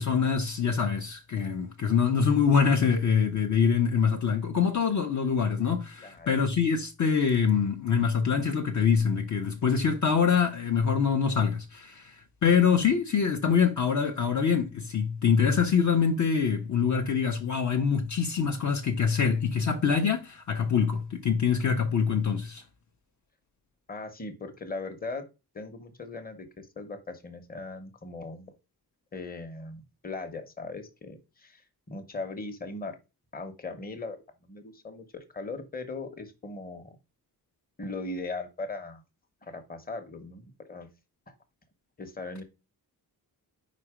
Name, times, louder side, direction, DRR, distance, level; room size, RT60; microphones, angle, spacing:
voice 1, 0.0-22.6, left 6 dB, 50° left, 0.7 m, -25 dB
voice 2, 23.9-25.3 25.5-28.5 29.1-31.6 31.9-33.0 33.3-34.2 34.4-37.0 37.8-39.0 39.4-40.9 42.0-42.4, left 3 dB, 25° left, 0.9 m, -39 dB
5.0 x 4.2 x 4.8 m
wide cardioid pair, 165°, 36 cm